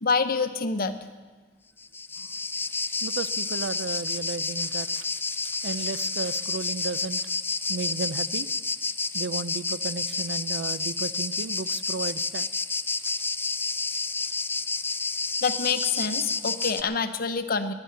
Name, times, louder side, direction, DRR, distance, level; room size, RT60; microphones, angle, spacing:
voice 1, 0.0-1.0 15.4-17.7, left 5 dB, 55° left, 10 dB, 0.9 m, -26 dB
sound 1, 1.8-16.8, left 4 dB, 10° left, 0.4 m, -30 dB
voice 2, 3.0-7.4 7.7-8.5 9.1-12.5 13.0-13.1, right 4 dB, 75° right, 16 dB, 0.5 m, -34 dB
10.5 x 10.5 x 10.0 m, 1.4 s
head